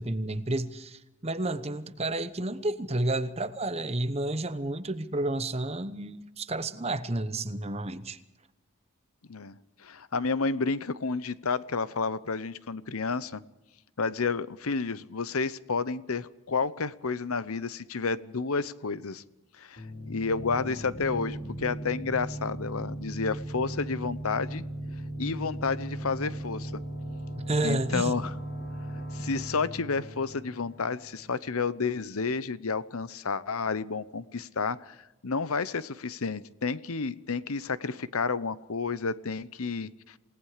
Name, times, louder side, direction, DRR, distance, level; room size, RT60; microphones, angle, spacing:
voice 1, 0.0-8.2 27.5-28.1, right 2 dB, 30° right, 0.9 m, -31 dB
voice 2, 9.8-13.4 14.0-19.2 19.6-24.6 25.2-26.8 27.6-28.3 29.1-35.0 35.2-40.1, left 4 dB, 80° left, 0.8 m, -31 dB
sound 1, 19.8-31.3, right 1 dB, 50° left, 5.1 m, -38 dB
28.5 x 18.5 x 5.0 m
head